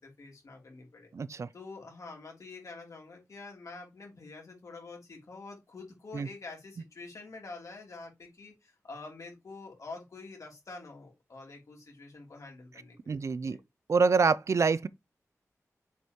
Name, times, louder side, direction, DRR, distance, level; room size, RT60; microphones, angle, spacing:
voice 1, 0.0-1.1 1.5-13.6, left 3 dB, 70° left, 3.2 m, -47 dB
voice 2, 1.1-1.5 6.1-6.3 13.1-13.6 13.9-14.9, right 5 dB, 60° right, 0.4 m, -26 dB
7.9 x 5.4 x 3.0 m
wide cardioid pair, 115°, 6 cm